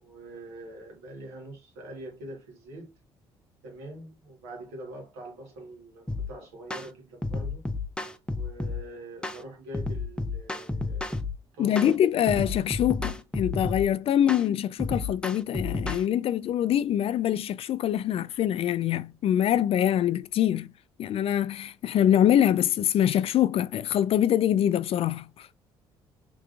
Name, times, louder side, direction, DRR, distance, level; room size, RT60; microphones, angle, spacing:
voice 1, 0.0-2.9 3.6-7.6 8.3-11.3 11.5-12.0, right 1 dB, 85° right, 1.4 m, -44 dB
sound 1, 6.1-6.3 6.7-6.9 7.2-8.8 9.2-9.4 9.7-11.3 11.8-11.9 12.3-13.9 14.3-14.5 14.8-16.0, left 3 dB, 10° left, 0.6 m, -31 dB
voice 2, 11.6-20.7 21.0-25.5, left 10 dB, 50° left, 0.4 m, -24 dB
3.6 x 3.3 x 2.4 m
hypercardioid pair, 55°, 12 cm